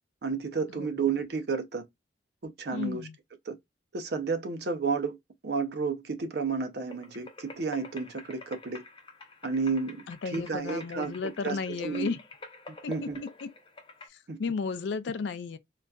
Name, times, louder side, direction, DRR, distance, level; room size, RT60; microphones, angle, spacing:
voice 1, 0.2-1.8 2.4-3.0 3.5-3.6 3.9-5.2 5.4-8.8 9.4-12.1 12.9-13.2 14.3-14.4, right 5 dB, 60° right, 0.5 m, -31 dB
voice 2, 2.7-3.2 10.1-12.2 12.8-13.1 13.4-13.5 14.1-15.6, left 5 dB, 70° left, 0.4 m, -34 dB
sound 1, 6.9-14.1, left 3 dB, 25° left, 0.6 m, -48 dB
3.9 x 2.3 x 2.2 m
head